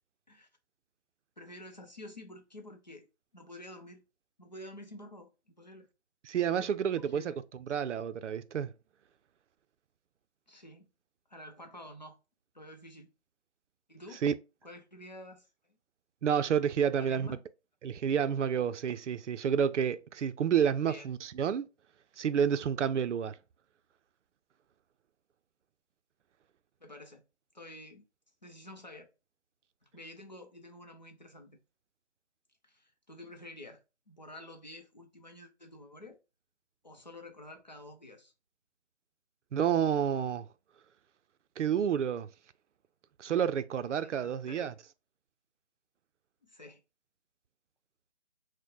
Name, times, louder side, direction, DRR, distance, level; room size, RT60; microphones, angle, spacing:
voice 1, 1.4-3.1 3.3-4.0 4.4-5.9 6.5-7.4 10.5-10.9 11.3-12.2 12.5-13.1 13.9-14.2 14.6-15.5 17.0-17.4 20.8-21.1 26.8-27.2 27.5-28.0 28.4-29.1 29.8-31.6 32.6-36.2 36.8-38.3 44.0-44.7 46.4-46.8, left 1 dB, 40° left, 0.5 m, -49 dB
voice 2, 6.3-7.3 7.7-8.7 14.2-14.3 16.2-17.3 17.8-21.7 22.2-23.3 39.5-40.5 41.6-42.3 43.2-44.7, right 8 dB, 90° right, 0.5 m, -29 dB
4.4 x 2.1 x 3.0 m
hypercardioid pair, 180°, 35 cm